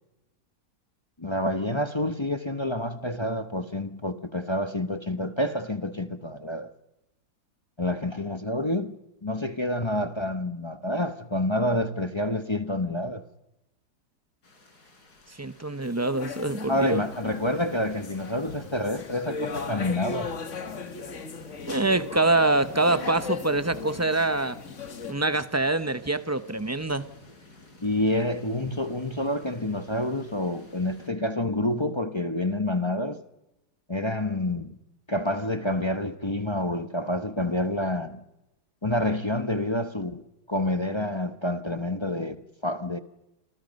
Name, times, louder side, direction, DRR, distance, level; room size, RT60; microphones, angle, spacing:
voice 1, 1.2-6.7 7.8-13.2 16.7-20.3 27.8-33.2 33.9-34.8 35.1-38.2 38.8-43.0, left 1 dB, 20° left, 0.8 m, -28 dB
sound 1, 14.4-31.1, left 2 dB, 70° left, 4.4 m, -47 dB
voice 2, 15.4-17.0 21.7-24.6 25.1-27.1, right 2 dB, 25° right, 0.4 m, -25 dB
sound 2, 15.8-25.1, left 5 dB, 50° left, 1.7 m, -38 dB
28.0 x 26.5 x 5.3 m
omnidirectional pair, 1.8 m